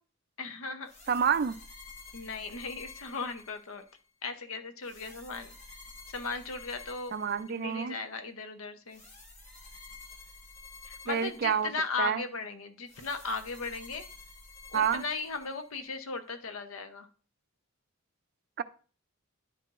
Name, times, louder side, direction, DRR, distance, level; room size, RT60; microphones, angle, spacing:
voice 1, 0.4-0.9 2.1-3.8 4.2-5.5 6.1-7.1 7.5-9.0 10.8-14.0 14.7-17.1, left 4 dB, 80° left, 0.8 m, -37 dB
sound 1, 0.8-4.0 4.8-7.9 8.9-12.0 12.9-16.0, left 3 dB, 35° left, 1.3 m, -51 dB
voice 2, 1.1-1.6 7.1-7.9 11.1-11.7 12.0-12.2 14.7-15.0 18.6-18.7, right 7 dB, 45° right, 0.3 m, -28 dB
10.5 x 4.7 x 2.5 m
head